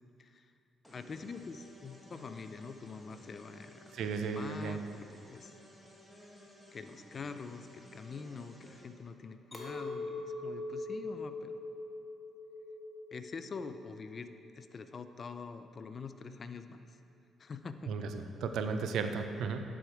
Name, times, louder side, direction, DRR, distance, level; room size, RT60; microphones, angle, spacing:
sound 1, 0.8-8.8, equal, ahead, 1.7 m, -57 dB
voice 1, 0.9-3.9 4.3-5.6 6.7-11.5 13.1-14.3 14.6-16.8 17.4-17.9, left 4 dB, 40° left, 10 dB, 0.4 m, -45 dB
voice 2, 3.9-4.8 17.9-19.6, right 5 dB, 75° right, 7 dB, 0.5 m, -35 dB
Chink clink, 9.5-14.9, left 2 dB, 20° left, 1.3 m, -42 dB
11.5 x 4.9 x 4.5 m, 2.7 s
cardioid pair, 90°, 0 cm